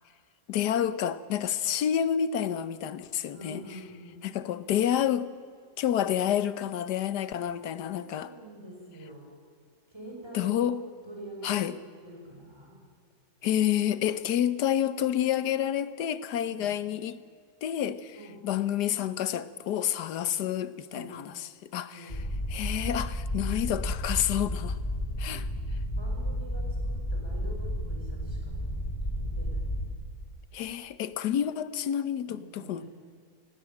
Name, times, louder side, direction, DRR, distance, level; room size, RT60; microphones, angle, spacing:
voice 1, 0.5-3.6 4.2-5.3 5.8-8.3 10.3-10.8 11.4-11.7 13.4-17.2 17.6-18.2 18.4-22.1 22.5-24.8 25.2-25.4 30.5-32.8, left 10 dB, 80° left, 1.4 m, -29 dB
voice 2, 3.3-4.2 7.8-9.3 9.9-10.7 11.1-12.8 16.5-16.7 18.1-18.4 20.8-21.2 21.9-22.2 25.2-25.5 25.9-28.7 29.1-29.7 32.3-32.9, right 1 dB, 15° right, 6.0 m, -46 dB
sound 1, 22.1-29.9, equal, 20° left, 3.1 m, -32 dB
17.5 x 17.0 x 8.9 m
omnidirectional pair, 1.8 m